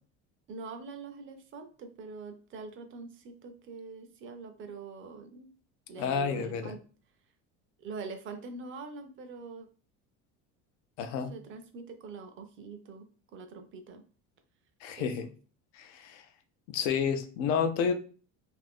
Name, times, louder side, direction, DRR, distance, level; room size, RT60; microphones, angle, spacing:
voice 1, 0.5-5.5 5.9-6.8 7.8-9.7 11.1-13.1 13.3-14.0 15.0-15.1, right 4 dB, 35° right, 7 dB, 0.5 m, -44 dB
voice 2, 6.0-6.7 11.0-11.3 14.8-15.3 15.7-16.2 16.7-17.9, left 6 dB, 85° left, 7 dB, 0.6 m, -30 dB
2.5 x 2.5 x 3.5 m, 0.38 s
cardioid pair, 135°, 34 cm